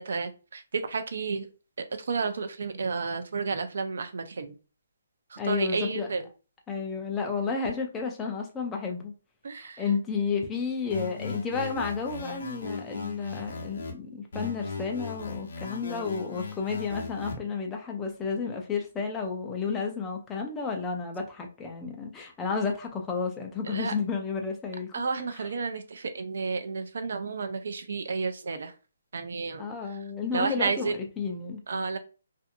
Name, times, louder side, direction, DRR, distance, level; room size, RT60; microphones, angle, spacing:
voice 1, 0.0-1.5 2.0-4.5 5.3-6.3 9.4-9.8 23.7-23.9 24.9-28.7 29.1-29.7 30.3-30.9 31.7-32.0, right 4 dB, 65° right, 0.5 m, -31 dB
voice 2, 5.4-6.1 6.7-9.1 9.6-24.9 29.6-31.6, left 5 dB, 10° left, 0.4 m, -31 dB
sound 1, 10.9-13.9 14.3-17.3, left 4 dB, 55° left, 0.8 m, -38 dB
2.6 x 2.5 x 2.5 m
hypercardioid pair, 170°, 0 cm